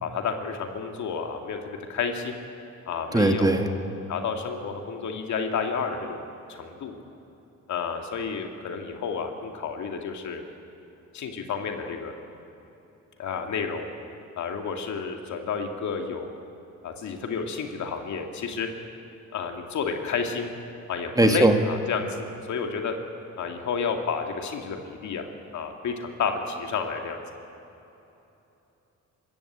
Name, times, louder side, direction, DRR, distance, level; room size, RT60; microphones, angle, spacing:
voice 1, 0.0-2.4 2.9-3.8 4.1-6.2 6.5-6.9 7.7-10.4 11.1-12.1 13.2-13.9 14.4-16.3 16.8-18.7 19.3-20.5 20.9-22.9 23.4-25.3 25.5-27.2, left 5 dB, 70° left, 4 dB, 2.4 m, -31 dB
voice 2, 3.1-3.7 21.2-21.5, right 2 dB, 10° right, 5 dB, 1.9 m, -19 dB
25.5 x 14.0 x 8.6 m, 3.0 s
cardioid pair, 90°, 30 cm